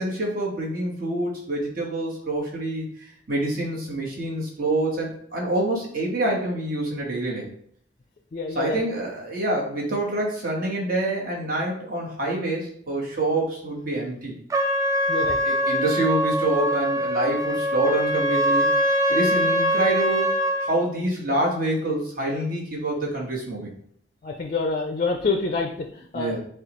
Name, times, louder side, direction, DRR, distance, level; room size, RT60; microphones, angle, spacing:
voice 1, 0.0-2.8 3.3-7.5 8.5-14.3 15.4-18.7 19.1-20.3 20.6-23.7 26.1-26.4, right 1 dB, 50° right, -3 dB, 1.4 m, -26 dB
voice 2, 8.3-8.8 15.1-15.4 24.2-26.4, left 3 dB, 40° left, 3 dB, 0.4 m, -27 dB
Trumpet, 14.5-20.7, equal, 20° right, 0.4 m, -23 dB
6.7 x 2.4 x 3.1 m, 0.62 s
head